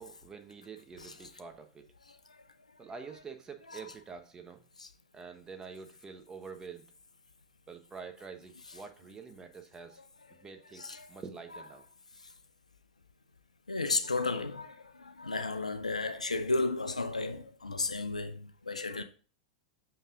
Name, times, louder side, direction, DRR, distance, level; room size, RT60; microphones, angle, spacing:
voice 1, 0.0-1.8 2.8-4.6 5.1-6.9 7.7-10.0 10.4-11.8, right 5 dB, 20° right, 1.2 m, -47 dB
voice 2, 1.0-1.3 2.1-2.4 3.7-3.9 4.8-4.9 10.7-11.1 13.7-19.0, left 3 dB, 90° left, 0.7 m, -34 dB
7.3 x 5.5 x 3.8 m
figure-of-eight pair, 95°, 4 cm